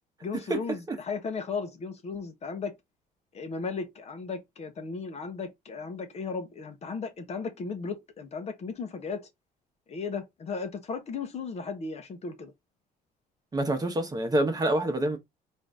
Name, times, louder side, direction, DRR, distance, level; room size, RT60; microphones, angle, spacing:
voice 1, 0.2-2.8 3.3-9.3 9.9-12.5, left 5 dB, 40° left, 0.8 m, -35 dB
voice 2, 13.5-15.2, right 1 dB, 20° right, 1.0 m, -26 dB
3.7 x 2.6 x 3.3 m
cardioid pair, 110°, 17 cm